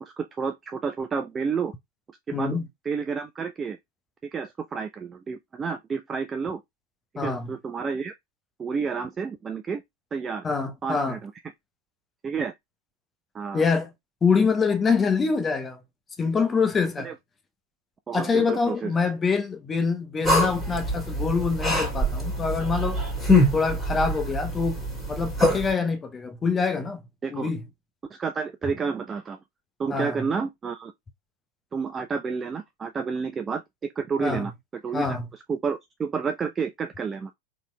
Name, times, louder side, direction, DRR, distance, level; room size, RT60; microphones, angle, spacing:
voice 1, 0.0-1.7 2.3-2.6 2.8-3.8 4.3-6.6 7.2-8.1 8.6-9.8 10.1-10.4 10.8-11.3 12.2-12.5 13.3-13.6 17.0-17.1 18.1-18.9 27.2-27.5 28.1-29.4 29.8-30.9 31.7-34.5 34.8-35.1 35.3-37.3, right 5 dB, 20° right, 0.3 m, -30 dB
voice 2, 2.3-2.7 7.2-7.5 10.4-11.2 13.5-13.9 14.2-15.8 16.2-17.1 18.1-23.0 23.5-27.0 27.3-27.6 29.9-30.2 34.2-34.5 34.9-35.2, left 5 dB, 20° left, 0.7 m, -25 dB
sound 1, 20.2-25.7, left 1 dB, ahead, 2.0 m, -24 dB
4.0 x 2.9 x 2.2 m
figure-of-eight pair, 90°, 0 cm